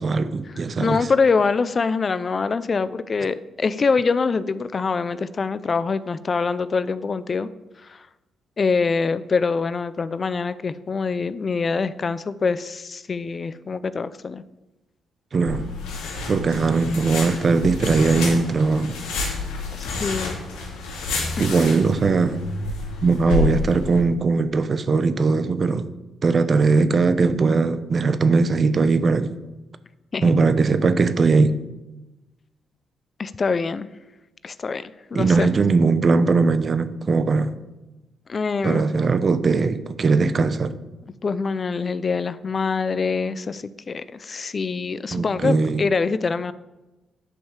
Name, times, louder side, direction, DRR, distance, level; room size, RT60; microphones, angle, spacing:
voice 1, 0.0-1.1 15.3-15.7 16.3-19.0 21.4-22.4 23.0-25.9 26.2-29.3 30.2-31.6 35.1-37.5 38.6-40.7 45.1-45.8, right 4 dB, 45° right, 0.8 m, -20 dB
voice 2, 0.8-7.5 7.8-8.0 8.6-14.4 19.8-20.4 21.4-21.5 30.1-30.3 33.2-33.9 34.4-34.8 35.1-35.5 38.3-38.8 41.2-46.5, left 4 dB, 45° left, 0.6 m, -24 dB
sound 1, 15.5-24.0, left 3 dB, 90° left, 2.4 m, -29 dB
10.0 x 5.5 x 7.4 m
supercardioid pair, 60°, 0 cm